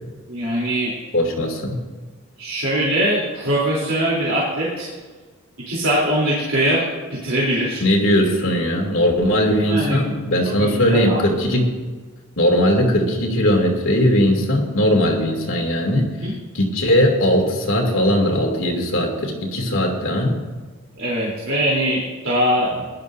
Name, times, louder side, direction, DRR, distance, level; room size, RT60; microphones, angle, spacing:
voice 1, 0.3-0.9 2.4-4.9 5.7-6.8 7.1-7.8 9.7-10.0 10.6-11.2 16.2-16.3 21.0-22.7, right 1 dB, 70° right, -7 dB, 3.5 m, -21 dB
voice 2, 1.1-1.8 7.8-11.7 12.4-16.2 16.5-20.4, equal, 70° left, 0 dB, 2.7 m, -19 dB
19.0 x 12.0 x 2.7 m, 1.4 s
head